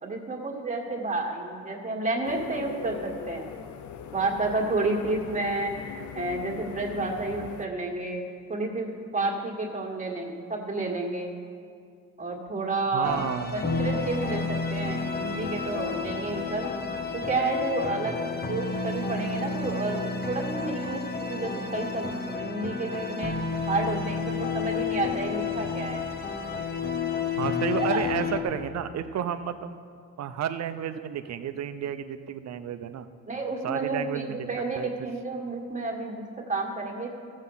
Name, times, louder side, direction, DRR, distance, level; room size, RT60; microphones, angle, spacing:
voice 1, 0.0-3.5 4.1-8.2 8.5-11.4 12.2-13.2 13.5-16.7 17.2-23.3 23.7-26.0 27.8-28.0 33.3-37.1, right 2 dB, 25° right, -1 dB, 1.8 m, -30 dB
sound 1, 2.2-7.7, left 8 dB, 75° left, 0.7 m, -40 dB
voice 2, 12.9-13.5 18.0-18.2 27.4-29.8 30.2-33.1 33.6-34.9, right 9 dB, 60° right, 11 dB, 0.7 m, -32 dB
sound 2, 13.0-28.4, left 5 dB, 30° left, 1.1 m, -31 dB
14.0 x 7.4 x 5.6 m, 2.3 s
cardioid pair, 90°, 30 cm